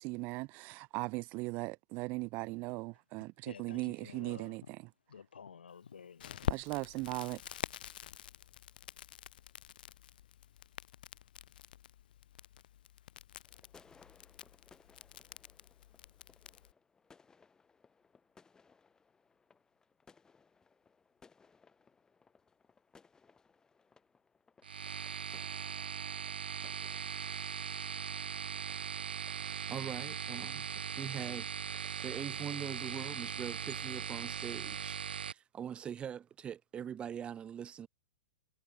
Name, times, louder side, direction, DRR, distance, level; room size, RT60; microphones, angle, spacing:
voice 1, 0.0-4.9 6.5-7.4, right 25 dB, 35° right, 0.5 m, -38 dB
voice 2, 3.5-4.5 5.1-6.5, left 6 dB, 85° left, 3.3 m, -51 dB
Crackle, 6.2-16.7, left 12 dB, 65° left, 5.2 m, -45 dB
sound 1, 13.5-32.9, left 5 dB, 10° left, 4.4 m, -66 dB
sound 2, 24.6-35.3, right 7 dB, 85° right, 0.8 m, -40 dB
voice 3, 29.3-30.7 31.0-37.9, right 8 dB, 20° right, 1.3 m, -43 dB
hypercardioid pair, 125°, 5 cm